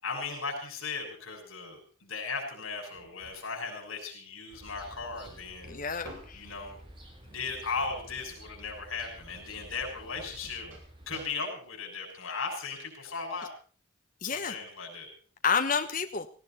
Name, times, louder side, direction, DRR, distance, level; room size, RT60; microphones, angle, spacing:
voice 1, 0.0-5.8 6.3-6.8 7.2-10.7 11.1-13.5 14.2-15.1, left 4 dB, 80° left, 1 dB, 6.4 m, -37 dB
sound 1, 2.9-3.4 5.3-6.4 9.3-9.6 10.2-11.3, right 1 dB, 70° right, 7.3 m, -49 dB
sound 2, 4.5-11.3, equal, 25° right, 3.7 m, -51 dB
voice 2, 5.7-6.5 14.2-14.6 15.4-16.3, left 6 dB, 40° left, 7 dB, 1.2 m, -29 dB
18.0 x 17.0 x 4.3 m, 0.40 s
head